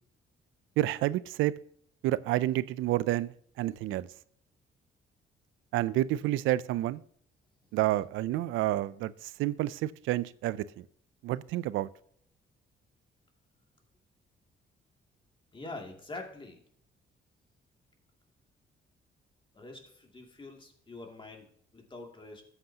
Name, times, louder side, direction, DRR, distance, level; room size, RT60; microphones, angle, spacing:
voice 1, 0.8-1.5 2.0-4.1 5.7-7.0 7.7-10.6 11.2-11.9, right 15 dB, 85° right, 17 dB, 0.4 m, -29 dB
voice 2, 15.5-16.6 19.5-22.4, left 2 dB, 25° left, 2 dB, 2.5 m, -45 dB
13.0 x 8.0 x 2.8 m, 0.65 s
cardioid pair, 90°, 20 cm